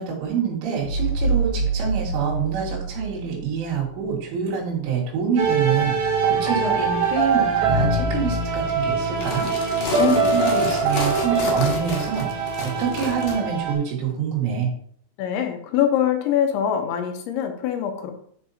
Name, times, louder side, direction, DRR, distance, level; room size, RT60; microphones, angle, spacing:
voice 1, 0.0-14.7, right 7 dB, 85° right, -3 dB, 4.4 m, -26 dB
sound 1, 0.8-4.2, right 3 dB, 45° right, 1.3 m, -26 dB
sound 2, 5.4-13.7, right 3 dB, 65° right, 2.1 m, -23 dB
sound 3, 9.1-13.4, left 4 dB, 60° left, 2.2 m, -31 dB
voice 2, 15.2-18.1, left 9 dB, 80° left, 5 dB, 3.0 m, -23 dB
10.5 x 5.3 x 2.8 m, 0.62 s
omnidirectional pair, 5.4 m